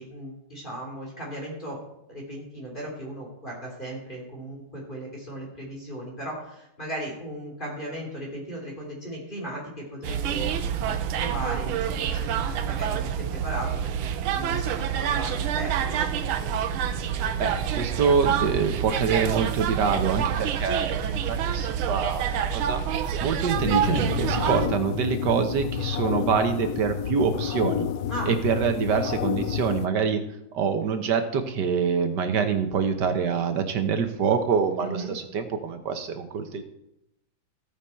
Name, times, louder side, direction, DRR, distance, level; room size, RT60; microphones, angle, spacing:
voice 1, 0.0-1.8 2.1-16.1 28.1-28.4 34.8-35.1, right 1 dB, 25° left, -3 dB, 3.3 m, -37 dB
sound 1, 10.0-24.7, right 8 dB, 85° right, 1.6 m, -27 dB
voice 2, 17.3-22.8 23.2-27.9 28.3-30.2 30.5-36.6, right 6 dB, 60° right, 7 dB, 1.6 m, -25 dB
sound 2, 23.5-29.9, left 9 dB, 90° left, 0.8 m, -29 dB
14.5 x 8.9 x 4.4 m, 0.83 s
omnidirectional pair, 2.3 m